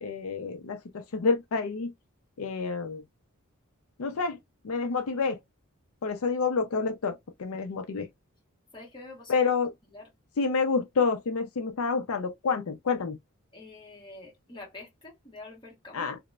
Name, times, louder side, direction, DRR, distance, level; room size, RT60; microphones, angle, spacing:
voice 1, 0.0-1.9 2.4-3.0 4.0-4.4 4.6-5.4 6.0-8.1 9.3-9.7 10.4-13.2 15.9-16.2, left 4 dB, 70° left, 0.4 m, -28 dB
voice 2, 8.7-9.4 9.8-10.1 13.5-16.1, left 2 dB, 20° left, 1.0 m, -46 dB
2.9 x 2.0 x 2.2 m
head